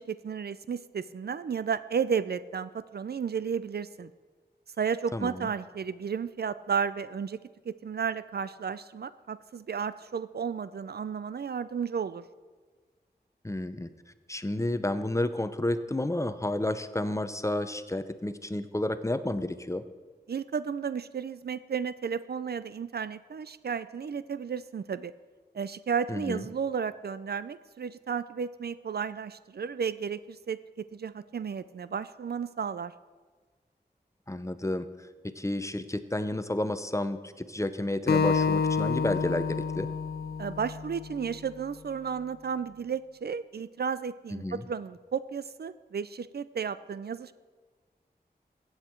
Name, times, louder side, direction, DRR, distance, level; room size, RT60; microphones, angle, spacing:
voice 1, 0.0-4.1 4.8-7.4 7.7-12.2 20.3-25.1 25.5-32.9 40.4-47.3, right 6 dB, 70° right, 15 dB, 0.4 m, -33 dB
voice 2, 5.1-5.5 13.4-13.9 14.3-19.8 26.1-26.4 34.3-34.9 35.2-39.9 44.3-44.6, left 1 dB, 15° left, 11 dB, 0.6 m, -31 dB
Acoustic guitar, 38.1-41.4, left 5 dB, 65° left, 0.5 m, -28 dB
15.0 x 8.1 x 4.5 m, 1.4 s
wide cardioid pair, 60°, 17 cm